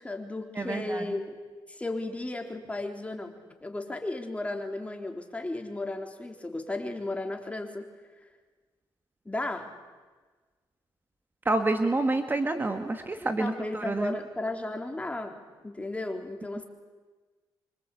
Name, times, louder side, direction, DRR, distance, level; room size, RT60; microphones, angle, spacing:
voice 1, 0.0-1.4 1.7-3.4 3.6-7.9 9.3-9.7 13.4-16.7, left 2 dB, 15° left, 4 dB, 3.9 m, -34 dB
voice 2, 0.5-1.1 11.5-14.2, right 2 dB, 25° right, 7 dB, 2.0 m, -28 dB
25.5 x 25.5 x 8.5 m, 1.4 s
cardioid pair, 80°, 9 cm